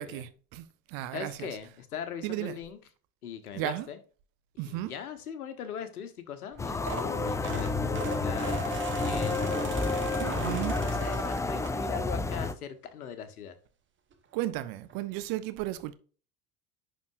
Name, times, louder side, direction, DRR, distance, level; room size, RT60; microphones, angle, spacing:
voice 1, 0.0-1.6 2.2-2.6 3.5-3.9 4.6-4.9 10.2-10.8 14.3-15.9, right 15 dB, 50° right, 1.0 m, -34 dB
voice 2, 1.1-2.8 3.2-4.0 4.7-9.9 10.8-13.5, left 7 dB, 75° left, 1.3 m, -40 dB
sound 1, 6.5-12.2 12.6-12.9 14.1-14.2 14.4-14.6 14.9-15.0, right 6 dB, 25° right, 1.4 m, -41 dB
sound 2, 6.6-12.5, left 3 dB, 5° left, 0.4 m, -30 dB
10.5 x 4.3 x 2.6 m
figure-of-eight pair, 70°, 44 cm